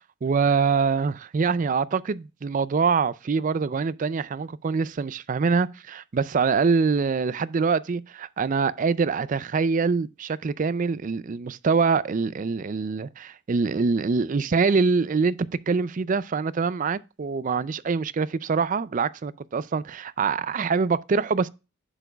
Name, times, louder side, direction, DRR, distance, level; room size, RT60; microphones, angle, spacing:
voice 1, 0.2-15.4 15.7-21.5, right 5 dB, 40° right, 0.4 m, -24 dB
9.9 x 6.9 x 2.3 m
head